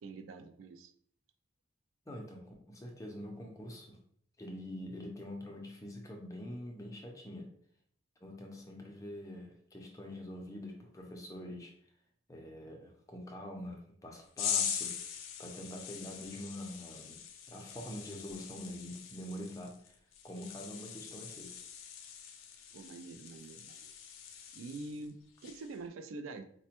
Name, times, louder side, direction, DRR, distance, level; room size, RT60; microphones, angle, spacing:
voice 1, 0.0-0.9 22.7-23.9 24.5-25.2 25.4-26.4, right 3 dB, 85° right, 7 dB, 0.4 m, -45 dB
voice 2, 2.1-4.0 4.4-7.5 8.2-11.7 12.3-14.9 15.4-17.2 17.5-20.0 20.2-21.6, left 1 dB, 15° left, 0 dB, 0.5 m, -45 dB
sound 1, 14.4-25.1 25.4-25.8, left 8 dB, 85° left, 0.5 m, -42 dB
4.1 x 2.2 x 2.9 m, 0.63 s
head